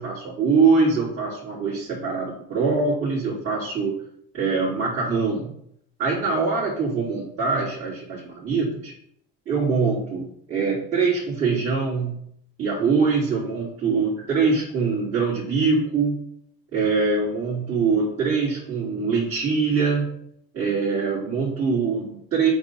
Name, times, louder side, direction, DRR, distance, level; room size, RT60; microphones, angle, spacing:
voice 1, 0.0-4.0 4.3-5.5 6.0-8.9 9.5-12.2 12.6-16.3 16.7-20.2 20.5-22.5, right 4 dB, 45° right, -9 dB, 3.0 m, -23 dB
7.8 x 2.8 x 5.7 m, 0.70 s
supercardioid pair, 100°, 32 cm